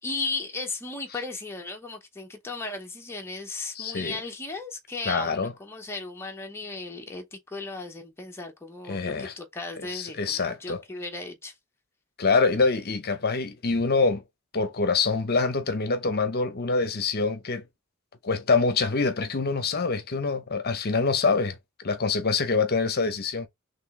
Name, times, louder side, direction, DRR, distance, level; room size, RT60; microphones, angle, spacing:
voice 1, 0.0-11.5, left 3 dB, 10° left, 0.7 m, -36 dB
voice 2, 3.7-4.2 5.1-5.5 8.9-9.3 9.9-10.8 12.2-14.2 14.5-17.6 18.2-23.5, left 4 dB, 50° left, 0.7 m, -25 dB
4.2 x 3.2 x 2.9 m
head